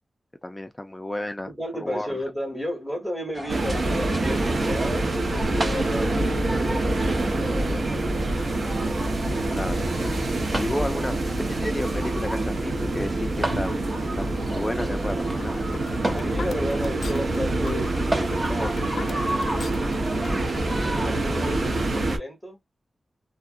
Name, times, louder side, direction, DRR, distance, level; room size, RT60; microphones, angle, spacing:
voice 1, 0.4-1.5 1.8-2.2 9.5-9.9 10.6-13.8 14.2-15.6, left 1 dB, 15° left, 0.4 m, -32 dB
voice 2, 1.5-5.2 5.5-8.3 16.1-18.8 20.8-22.6, equal, 5° right, 1.1 m, -33 dB
sound 1, 3.3-21.8, right 1 dB, 30° right, 0.8 m, -34 dB
sound 2, 3.5-22.2, right 2 dB, 65° right, 1.0 m, -26 dB
sound 3, 15.2-20.8, left 4 dB, 80° left, 0.4 m, -38 dB
2.7 x 2.3 x 2.5 m
wide cardioid pair, 145°, 0 cm